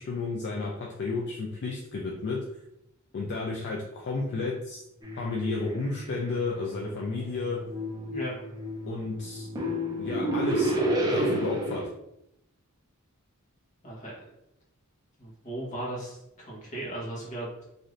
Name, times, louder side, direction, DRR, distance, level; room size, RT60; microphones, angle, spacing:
voice 1, 0.0-2.4 3.1-4.8 5.2-7.6 8.9-9.5 10.0-10.7 11.0-11.8, left 3 dB, 55° left, -2 dB, 0.4 m, -32 dB
sound 1, 5.0-11.9, right 1 dB, 20° right, 0.5 m, -31 dB
voice 2, 15.2-17.6, right 1 dB, 35° left, -4 dB, 1.1 m, -37 dB
3.1 x 2.6 x 2.5 m, 0.81 s
head